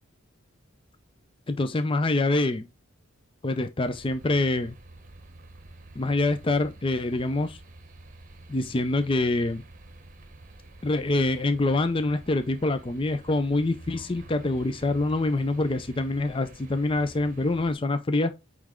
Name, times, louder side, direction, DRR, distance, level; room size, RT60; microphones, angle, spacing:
voice 1, 1.5-2.7 3.4-4.7 6.0-7.6 8.5-9.6 10.8-18.3, left 2 dB, 25° left, 0.4 m, -25 dB
sound 1, 3.9-17.8, right 2 dB, 40° right, 0.9 m, -48 dB
8.5 x 3.2 x 3.6 m
head